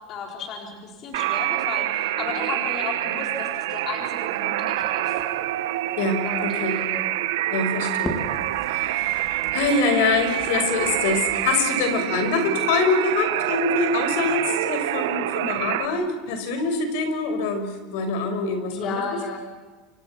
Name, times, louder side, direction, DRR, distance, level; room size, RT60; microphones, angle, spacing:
voice 1, 0.1-5.2 6.2-7.0 18.7-19.4, left 4 dB, 35° left, 1 dB, 4.2 m, -34 dB
sound 1, 1.1-15.9, right 15 dB, 90° right, 1.3 m, -26 dB
Crackle, 4.0-11.8, left 1 dB, 10° left, 3.8 m, -42 dB
voice 2, 6.0-6.8 7.5-8.2 8.7-19.0, left 4 dB, 65° left, 7 dB, 5.7 m, -25 dB
29.0 x 25.5 x 6.0 m, 1.3 s
supercardioid pair, 170°, 0 cm